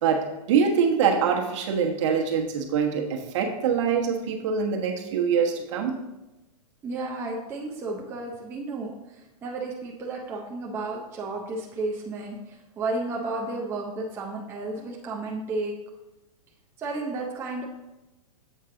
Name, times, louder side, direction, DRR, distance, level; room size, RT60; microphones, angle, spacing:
voice 1, 0.0-6.0, right 6 dB, 50° right, 2 dB, 1.2 m, -24 dB
voice 2, 6.8-8.9 9.4-12.4 12.8-15.7 16.8-17.6, right 2 dB, 10° right, -1 dB, 0.5 m, -32 dB
7.5 x 5.5 x 3.8 m, 1.0 s
hypercardioid pair, 155°, 20 cm